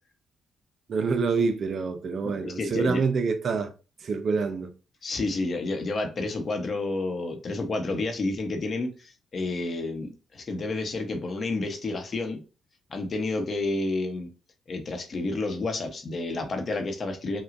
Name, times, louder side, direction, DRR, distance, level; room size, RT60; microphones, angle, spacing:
voice 1, 0.9-3.7 4.0-4.7, right 4 dB, 50° right, 0.6 m, -26 dB
voice 2, 2.2-3.0 5.0-12.4 12.9-14.3 14.7-17.4, left 2 dB, 45° left, 1.0 m, -30 dB
5.9 x 2.3 x 2.6 m
cardioid pair, 90°, 0 cm